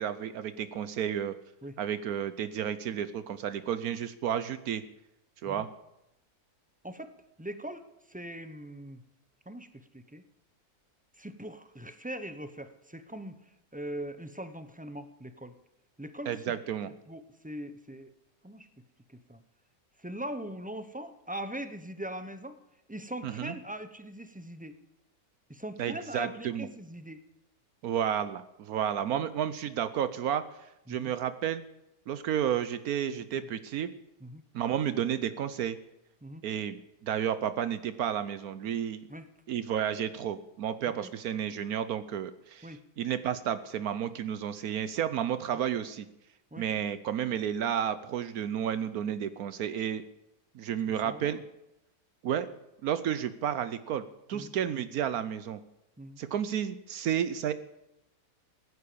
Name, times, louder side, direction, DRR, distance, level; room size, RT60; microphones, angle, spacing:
voice 1, 0.0-1.3 1.8-4.8 5.4-5.7 16.3-16.9 23.2-23.5 25.8-26.7 27.8-30.4 30.9-31.6 32.1-33.9 34.5-35.8 36.4-36.8 37.0-39.0 39.5-42.7 43.0-46.1 46.6-50.0 50.5-51.4 52.2-52.5 52.8-55.6 56.2-57.5, right 9 dB, 75° right, 12 dB, 1.2 m, -31 dB
voice 2, 7.4-9.0 9.4-10.2 11.1-15.5 16.0-16.6 17.1-18.1 18.4-19.4 20.0-22.6 22.9-24.7 25.5-27.2 30.9-31.1 33.1-33.5 34.2-34.4 36.2-36.4 39.1-39.3 40.8-41.1 42.6-42.8 46.5-46.7 51.0-51.4 54.3-54.5 56.0-56.2, right 1 dB, 5° right, 10 dB, 0.7 m, -41 dB
16.5 x 9.5 x 8.5 m, 0.87 s
omnidirectional pair, 1.6 m